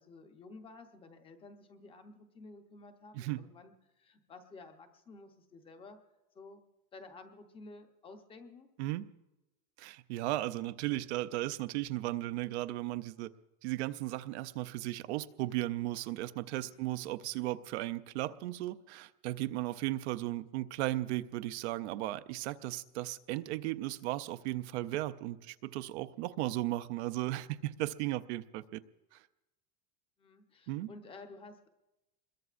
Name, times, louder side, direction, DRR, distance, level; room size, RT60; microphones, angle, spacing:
voice 1, 0.0-6.0 6.3-6.6 6.9-8.7 14.8-15.0 16.6-16.9 30.2-31.7, left 3 dB, 10° left, 6 dB, 0.7 m, -53 dB
voice 2, 9.8-13.3 13.6-28.8 29.1-29.2 30.7-30.9, right 16 dB, 45° right, 14 dB, 0.5 m, -36 dB
26.5 x 22.0 x 2.5 m, 1.0 s
supercardioid pair, 170°, 47 cm